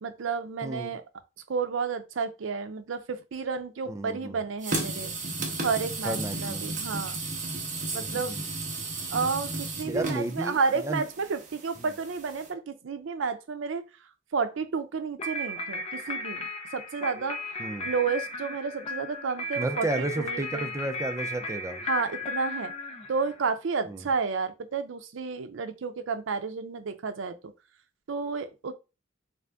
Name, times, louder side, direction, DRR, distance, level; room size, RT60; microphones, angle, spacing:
voice 1, 0.0-1.0 1.5-5.1 5.6-7.2 7.9-8.4 9.1-20.7 21.8-22.7 23.1-27.5 28.1-28.7, right 5 dB, 80° right, 0.5 m, -31 dB
voice 2, 0.6-0.9 3.9-4.4 6.0-6.7 7.9-8.4 9.9-10.6 10.8-11.0 17.6-17.9 19.6-21.9 23.9-24.1, right 2 dB, 15° right, 0.4 m, -32 dB
sound 1, 4.6-12.5, right 3 dB, 40° right, 0.8 m, -34 dB
sound 2, 15.2-23.5, left 2 dB, 35° left, 0.6 m, -35 dB
3.4 x 2.6 x 3.4 m
head